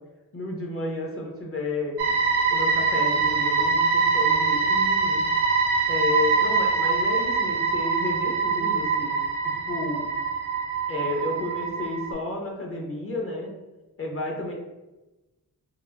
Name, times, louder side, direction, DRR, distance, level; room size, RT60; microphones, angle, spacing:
voice 1, 0.3-2.0 2.5-5.2 5.9-9.1 9.4-10.0 10.9-13.5 14.0-14.5, left 2 dB, 35° left, 0 dB, 0.9 m, -31 dB
sound 1, 2.0-12.1, right 4 dB, 80° right, 0.6 m, -24 dB
3.2 x 2.1 x 2.5 m, 1.1 s
supercardioid pair, 40°, 39 cm